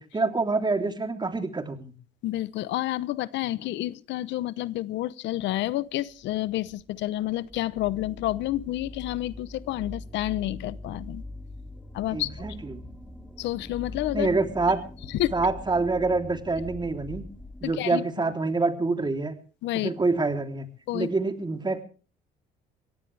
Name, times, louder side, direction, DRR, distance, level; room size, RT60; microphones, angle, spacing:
voice 1, 0.0-1.9 12.1-12.8 14.1-14.8 15.3-17.2 17.6-19.4 19.7-20.7 20.9-21.8, right 3 dB, 25° right, 6 dB, 3.3 m, -26 dB
voice 2, 2.2-11.2 11.9-12.3 13.4-14.3 15.2-15.3 17.6-18.0 19.6-19.9 20.9-21.1, left 15 dB, 70° left, 18 dB, 0.9 m, -29 dB
sound 1, 6.1-17.7, left 1 dB, 5° left, 3.5 m, -42 dB
23.5 x 17.5 x 3.4 m, 0.38 s
supercardioid pair, 75°, 19 cm